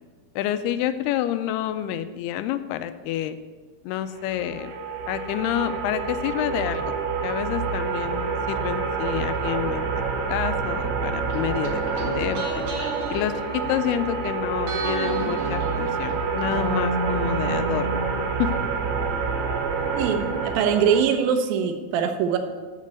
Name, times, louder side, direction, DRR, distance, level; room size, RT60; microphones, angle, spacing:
voice 1, 0.4-3.4 3.8-4.7 5.1-6.9 7.2-9.9 10.3-12.6 13.1-17.9 18.4-18.5, left 11 dB, 80° left, 11 dB, 2.4 m, -28 dB
sound 1, 4.2-21.0, right 5 dB, 85° right, 3.4 m, -28 dB
sound 2, 11.3-14.3 14.6-18.5 18.7-18.8, right 1 dB, 50° right, 1.7 m, -32 dB
voice 2, 19.9-22.4, right 7 dB, 70° right, 6 dB, 2.5 m, -22 dB
7.4 x 7.4 x 8.1 m, 1.4 s
omnidirectional pair, 4.8 m